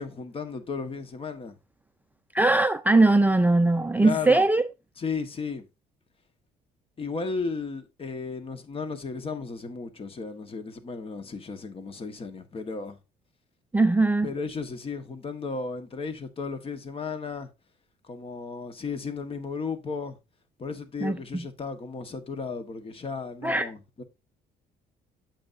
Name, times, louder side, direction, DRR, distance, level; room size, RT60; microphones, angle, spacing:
voice 1, 0.0-1.5 4.0-4.5 5.0-5.6 7.0-13.0 14.2-17.5 18.0-20.2 20.6-24.0, left 4 dB, 35° left, 1.3 m, -34 dB
voice 2, 2.3-4.6 13.7-14.3 21.0-21.4 23.4-23.7, right 2 dB, 10° right, 0.5 m, -21 dB
8.7 x 7.3 x 2.6 m
cardioid pair, 110°, 17 cm